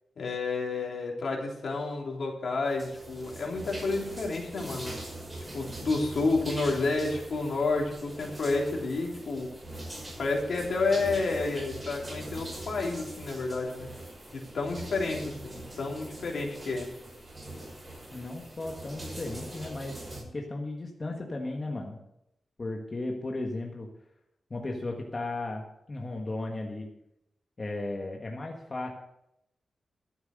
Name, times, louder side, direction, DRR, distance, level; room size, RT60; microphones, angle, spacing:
voice 1, 0.2-4.9 5.5-9.5 10.2-13.9 14.3-16.9, left 3 dB, 70° left, -1 dB, 3.3 m, -30 dB
sound 1, 2.7-20.2, right 1 dB, 20° right, 6.2 m, -42 dB
voice 2, 18.1-22.0 22.6-23.9 24.5-26.9 27.6-28.9, left 2 dB, 35° left, 1 dB, 1.5 m, -35 dB
13.0 x 7.9 x 6.6 m, 0.82 s
wide cardioid pair, 120°, 0 cm